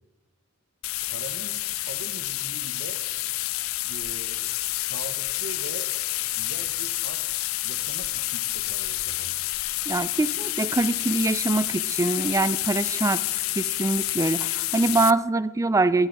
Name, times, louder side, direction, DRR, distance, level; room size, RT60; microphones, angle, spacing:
sound 1, 0.8-15.1, left 17 dB, 90° left, 0.4 m, -29 dB
voice 1, 1.1-3.0 3.8-5.9 6.3-7.3 7.6-9.6, right 3 dB, 70° right, 10 dB, 0.9 m, -42 dB
voice 2, 9.9-16.1, right 2 dB, 15° right, 16 dB, 0.3 m, -24 dB
19.5 x 9.9 x 3.9 m, 1.2 s
head